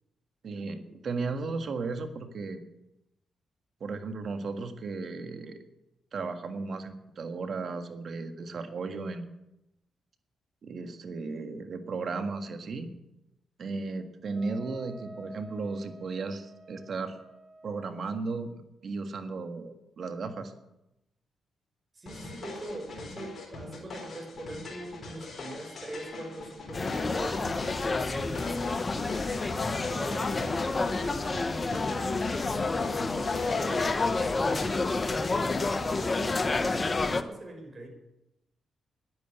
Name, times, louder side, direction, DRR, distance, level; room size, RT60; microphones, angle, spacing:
voice 1, 0.4-2.6 3.8-5.6 6.1-9.3 10.6-12.9 13.6-17.1 17.6-18.5 18.8-20.5, right 4 dB, 60° right, 7 dB, 1.7 m, -35 dB
Wind instrument woodwind instrument, 14.3-18.0, right 1 dB, 5° left, 4.7 m, -49 dB
voice 2, 21.9-29.2 29.9-35.4 35.8-37.9, right 1 dB, 35° right, 2 dB, 5.4 m, -43 dB
sound 1, 22.1-33.9, left 3 dB, 55° left, 4.2 m, -42 dB
sound 2, 26.7-37.2, left 3 dB, 35° left, 1.0 m, -29 dB
10.5 x 9.5 x 9.3 m, 0.91 s
supercardioid pair, 50°, 0 cm